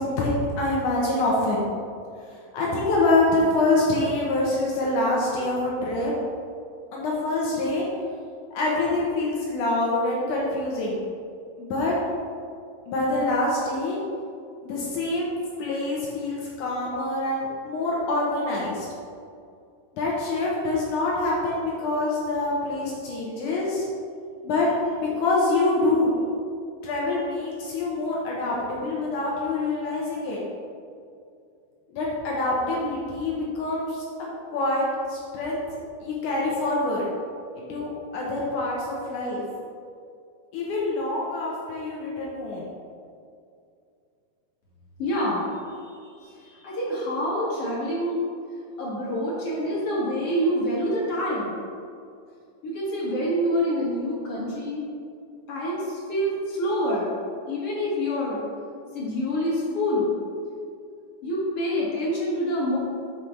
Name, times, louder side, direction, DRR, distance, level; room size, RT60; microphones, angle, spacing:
voice 1, 0.0-1.7 2.5-6.1 6.9-7.9 8.5-11.0 11.6-11.9 12.9-14.0 14.6-18.9 19.9-23.8 24.4-26.2 26.8-30.4 31.9-34.0 34.5-37.0 37.5-39.5 40.5-42.7, left 2 dB, 70° left, -4 dB, 2.4 m, -25 dB
voice 2, 45.0-45.4 46.2-48.2 48.8-51.5 52.6-54.9 55.5-57.1 57.5-58.4 58.9-60.1 61.2-62.8, equal, 50° left, -6 dB, 2.7 m, -26 dB
7.4 x 4.9 x 5.7 m, 2.4 s
omnidirectional pair, 3.8 m